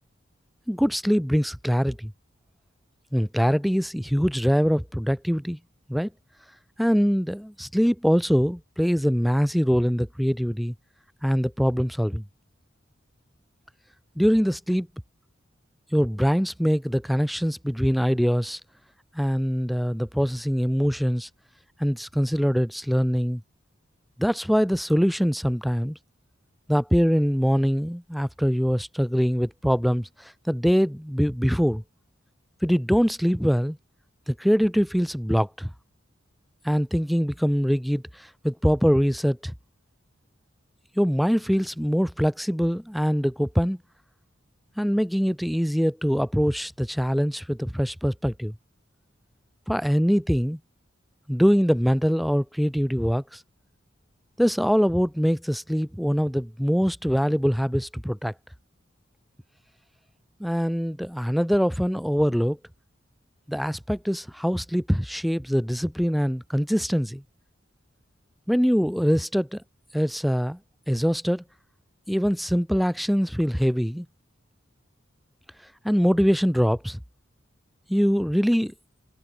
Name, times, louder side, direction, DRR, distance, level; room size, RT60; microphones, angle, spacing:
voice 1, 0.7-2.1 3.1-5.6 5.9-6.1 6.8-10.7 11.2-12.2 14.2-14.9 15.9-18.6 19.1-21.3 21.8-23.4 24.2-26.0 26.7-31.8 32.6-33.8 34.3-35.7 36.6-39.5 41.0-43.8 44.8-48.5 49.7-50.6 51.3-53.4 54.4-58.3 60.4-62.6 63.5-67.2 68.5-69.6 69.9-70.6 70.9-71.4 72.1-74.1 75.8-77.0 77.9-78.7, equal, ahead, 4.6 m, -23 dB
head